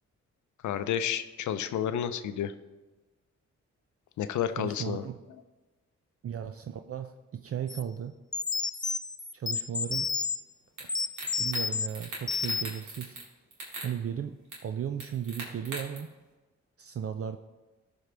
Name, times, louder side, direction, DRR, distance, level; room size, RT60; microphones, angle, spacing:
voice 1, 0.6-2.5 4.2-5.0, left 9 dB, 80° left, 11 dB, 0.5 m, -30 dB
voice 2, 4.6-5.2 6.2-8.1 9.3-10.1 10.8-11.0 11.4-13.2 13.8-14.4 14.6-16.1 16.8-17.4, right 8 dB, 50° right, 7 dB, 0.5 m, -35 dB
sound 1, 7.7-7.8 8.3-10.4 10.9-11.9 12.3-12.8, left 4 dB, 15° left, 0.3 m, -31 dB
sound 2, 10.8-10.9 11.2-11.6 11.9-13.3 13.5-13.9 14.5-14.6 15.0-16.0, right 2 dB, 80° right, 2.5 m, -40 dB
14.0 x 4.7 x 3.4 m, 1.2 s
cardioid pair, 55°, 29 cm